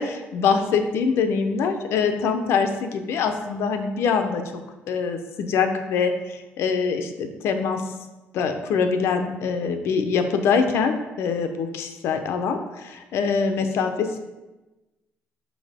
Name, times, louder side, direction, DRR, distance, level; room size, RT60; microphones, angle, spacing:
voice 1, 0.0-4.6 4.9-7.8 8.3-14.2, left 5 dB, 70° left, 6 dB, 0.7 m, -24 dB
6.2 x 5.5 x 3.5 m, 1.1 s
cardioid pair, 155°, 4 cm